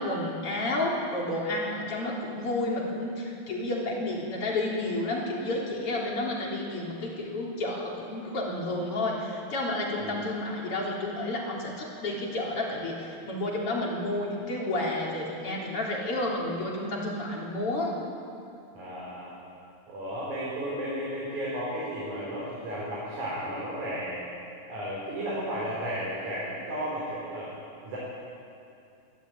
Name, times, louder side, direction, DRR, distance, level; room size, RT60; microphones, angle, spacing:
voice 1, 0.0-17.9, left 2 dB, 50° left, -3 dB, 4.3 m, -31 dB
voice 2, 18.7-19.3 19.9-24.2 24.7-27.5 27.8-28.0, equal, 85° right, -6 dB, 5.7 m, -34 dB
23.5 x 14.0 x 9.0 m, 2.5 s
omnidirectional pair, 3.3 m